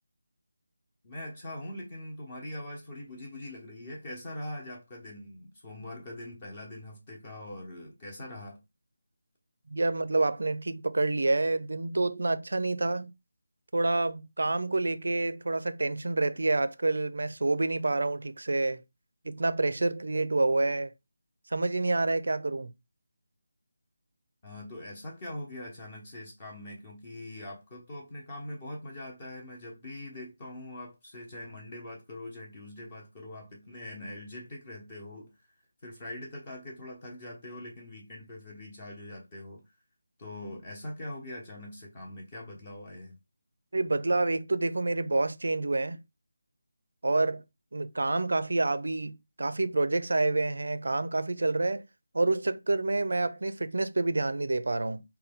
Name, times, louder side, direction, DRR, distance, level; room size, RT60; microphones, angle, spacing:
voice 1, 1.0-8.6 24.4-35.5 35.8-39.6 40.2-43.2, left 1 dB, 30° left, 0.9 m, -42 dB
voice 2, 9.7-13.1 13.7-18.8 19.2-20.9 21.5-22.7 43.7-46.0 47.0-47.4 47.7-51.8 52.1-55.0, right 2 dB, 75° right, 0.4 m, -28 dB
4.0 x 2.2 x 3.5 m
figure-of-eight pair, 170°, 0 cm